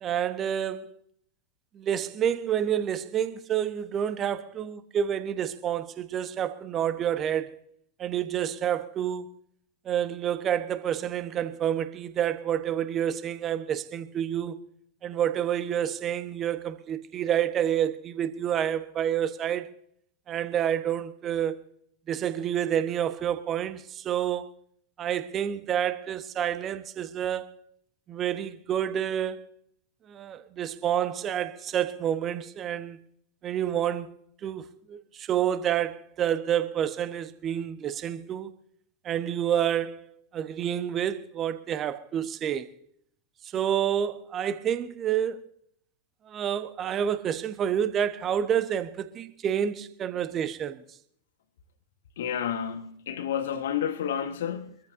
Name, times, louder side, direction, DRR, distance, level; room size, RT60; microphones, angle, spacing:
voice 1, 0.0-0.8 1.7-7.6 8.0-9.3 9.8-14.6 15.0-19.7 20.3-21.6 22.1-24.5 25.0-27.5 28.1-29.4 30.1-33.0 33.4-34.1 34.4-38.5 39.0-42.7 43.5-45.4 46.3-50.8, right 9 dB, 30° right, 1.2 m, -28 dB
voice 2, 52.2-54.8, left 9 dB, 60° left, 1.5 m, -30 dB
25.0 x 14.0 x 2.8 m
figure-of-eight pair, 90°, 0 cm